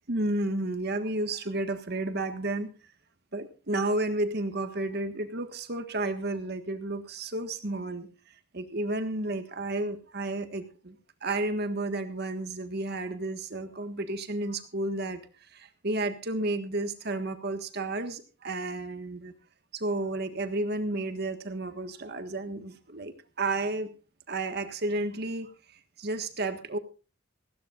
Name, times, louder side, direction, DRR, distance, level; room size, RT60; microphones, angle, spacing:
voice 1, 0.1-2.7 3.3-8.1 8.5-15.2 15.5-19.3 19.7-23.9 24.3-26.8, right 2 dB, 55° right, 8 dB, 1.6 m, -32 dB
19.0 x 16.0 x 2.5 m, 0.34 s
head